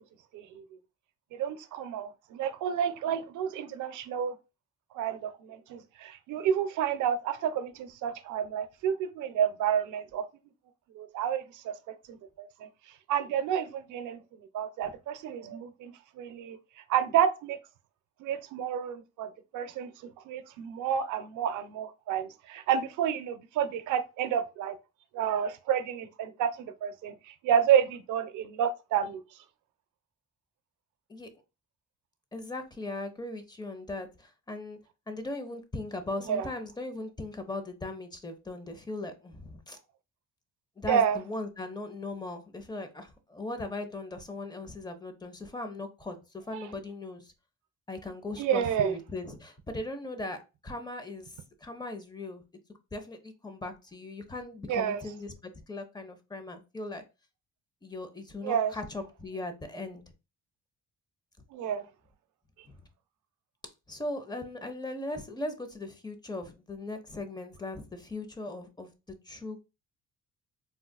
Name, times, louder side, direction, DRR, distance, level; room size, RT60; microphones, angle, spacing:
voice 1, 0.3-0.6 1.3-4.4 4.9-10.3 10.9-12.7 13.1-14.2 14.5-16.6 16.9-17.6 18.2-19.9 20.3-24.8 25.1-29.2 36.3-36.5 40.9-41.2 48.4-48.9 54.7-55.0 58.4-58.7 61.5-61.9, right 8 dB, 85° right, 0.5 m, -30 dB
voice 2, 32.3-34.8 35.1-39.8 40.8-47.3 47.9-52.4 52.9-55.3 55.7-57.0 57.8-60.0 62.7-62.8 63.9-68.9 69.2-69.6, left 2 dB, 15° left, 0.7 m, -39 dB
3.7 x 2.3 x 2.3 m
cardioid pair, 90°, 30 cm